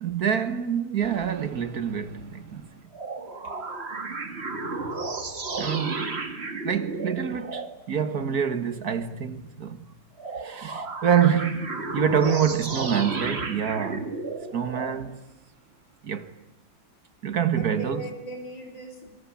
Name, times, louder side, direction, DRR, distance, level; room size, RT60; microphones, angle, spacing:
voice 1, 0.0-2.7 5.6-6.2 6.6-9.9 10.4-14.2 14.5-15.2 16.0-16.3 17.2-18.0, right 8 dB, 55° right, 1.7 m, -26 dB
sound 1, 1.0-2.6 2.9-7.7 10.2-15.0, right 3 dB, 35° right, 2.0 m, -33 dB
voice 2, 3.2-4.1 14.6-15.0 17.5-19.1, right 2 dB, 80° left, 5.2 m, -40 dB
25.5 x 24.0 x 8.6 m
omnidirectional pair, 2.0 m